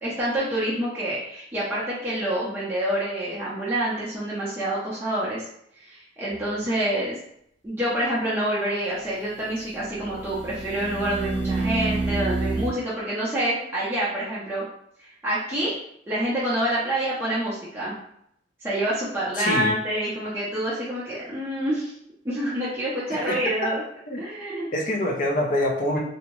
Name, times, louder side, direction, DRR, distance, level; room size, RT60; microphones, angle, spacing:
voice 1, 0.0-5.4 5.8-7.2 7.6-14.6 15.0-15.7 16.1-18.0 18.6-21.9 22.2-23.8 24.2-24.7, right 1 dB, 10° right, -9 dB, 0.5 m, -27 dB
sound 1, 6.3-6.4 9.8-12.7, right 3 dB, 80° right, 0.6 m, -28 dB
voice 2, 19.4-19.7 23.1-23.4 24.1-24.2 24.7-26.0, left 1 dB, 45° left, 0 dB, 0.4 m, -25 dB
2.6 x 2.0 x 2.9 m, 0.72 s
head